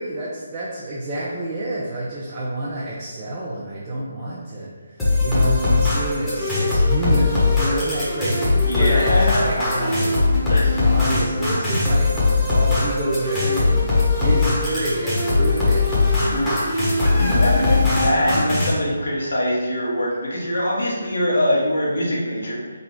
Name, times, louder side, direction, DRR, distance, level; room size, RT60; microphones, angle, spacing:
voice 1, 0.0-10.2 10.8-13.8 14.2-16.6 17.0-17.5, right 1 dB, 25° right, -7 dB, 0.6 m, -28 dB
sound 1, 5.0-18.7, left 3 dB, 5° left, 1.1 m, -20 dB
voice 2, 8.6-9.9 10.5-10.8 16.2-16.6 17.2-22.7, equal, 75° left, -5 dB, 1.5 m, -23 dB
3.9 x 2.2 x 4.5 m, 1.4 s
hypercardioid pair, 160°, 0 cm